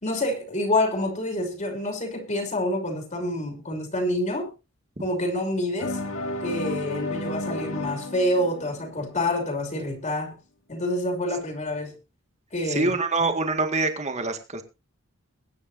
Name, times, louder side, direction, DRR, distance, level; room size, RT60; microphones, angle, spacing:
voice 1, 0.0-4.5 5.0-6.0 6.4-10.4 10.7-12.0 12.5-12.9 13.2-13.3, left 1 dB, 35° left, 3.0 m, -27 dB
sound 1, 5.8-9.6, left 2 dB, 90° left, 2.3 m, -32 dB
voice 2, 12.7-14.6, right 3 dB, 35° right, 2.0 m, -25 dB
22.0 x 9.9 x 2.7 m
head